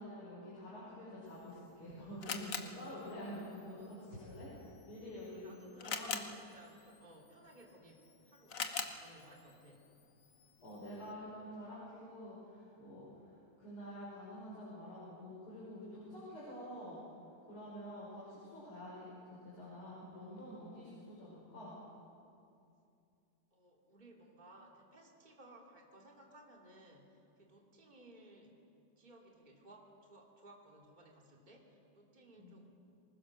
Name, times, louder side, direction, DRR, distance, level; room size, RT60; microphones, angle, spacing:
voice 1, 0.0-4.5 4.8-5.5 5.8-6.2 10.6-17.0 17.4-19.1 19.4-21.8 32.3-32.5, equal, 80° left, -8 dB, 6.6 m, -48 dB
Camera, 1.3-11.1, left 5 dB, 45° left, 1.3 m, -47 dB
voice 2, 5.4-9.9 23.5-28.6 29.0-32.7, right 1 dB, 20° right, 0 dB, 2.9 m, -60 dB
25.5 x 20.0 x 6.5 m, 2.6 s
omnidirectional pair, 2.3 m